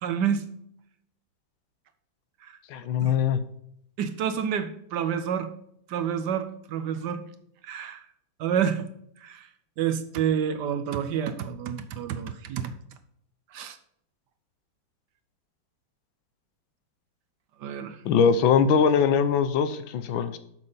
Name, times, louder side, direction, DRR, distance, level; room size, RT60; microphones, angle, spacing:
voice 1, 0.0-0.5 3.0-3.1 4.0-5.5 5.9-7.2 7.6-8.0 8.4-8.8 9.2-9.5 9.8-12.7 13.5-13.8 17.6-18.0, right 8 dB, 70° right, 10 dB, 1.2 m, -28 dB
voice 2, 2.7-3.4 18.0-20.4, left 6 dB, 90° left, 11 dB, 1.5 m, -22 dB
7.5 x 6.2 x 5.4 m, 0.71 s
omnidirectional pair, 2.1 m